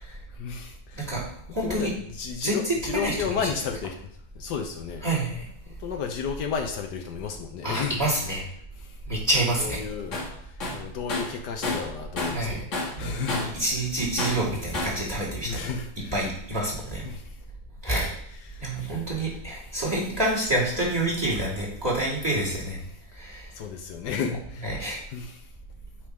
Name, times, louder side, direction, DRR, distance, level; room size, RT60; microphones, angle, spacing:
voice 1, 0.0-1.1 1.6-1.9 2.2-3.9 4.4-5.0 5.7-8.0 8.8-8.9 9.6-10.2 10.7-13.4 15.5-16.1 17.0-17.3 17.9-18.1 18.5-19.0 23.5-24.7 25.1-25.4, left 6 dB, 75° left, 4 dB, 1.3 m, -33 dB
voice 2, 1.5-1.9 2.4-3.5 5.0-5.4 7.6-8.4 9.1-9.8 12.3-12.6 13.0-15.7 16.1-17.0 17.8-18.1 18.6-22.8 23.2-23.5 24.6-25.0, right 1 dB, 15° right, -6 dB, 2.7 m, -27 dB
Tools, 10.1-10.3 10.6-12.5 12.7-13.6 14.2-15.0, left 2 dB, 45° left, 1.5 m, -30 dB
8.8 x 3.8 x 4.9 m, 0.67 s
omnidirectional pair, 1.9 m